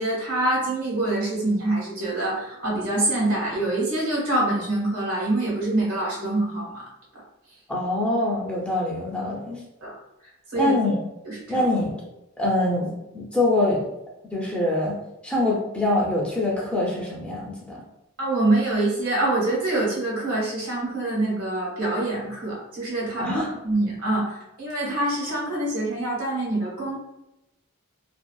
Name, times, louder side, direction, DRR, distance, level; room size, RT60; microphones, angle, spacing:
voice 1, 0.0-6.7 9.8-9.9 10.5-10.7 11.2-11.6 18.2-27.0, right 2 dB, 90° right, -4 dB, 1.1 m, -25 dB
voice 2, 7.7-9.6 10.5-11.0 11.5-12.0 12.4-13.8 14.3-15.0 15.2-17.8 23.2-23.5, left 1 dB, 5° left, -4 dB, 0.4 m, -24 dB
2.5 x 2.3 x 2.2 m, 0.90 s
head